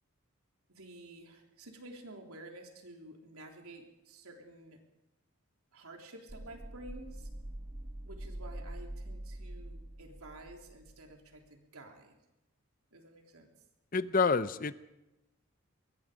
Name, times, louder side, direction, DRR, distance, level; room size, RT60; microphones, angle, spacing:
voice 1, 0.7-4.8 5.7-7.3 8.0-12.2 12.9-13.5, right 2 dB, 85° right, 2 dB, 3.6 m, -51 dB
sound 1, 6.3-11.1, right 1 dB, 25° right, 1.0 m, -44 dB
voice 2, 13.9-14.7, left 4 dB, 40° left, 14 dB, 0.7 m, -28 dB
23.0 x 22.5 x 5.1 m, 0.97 s
head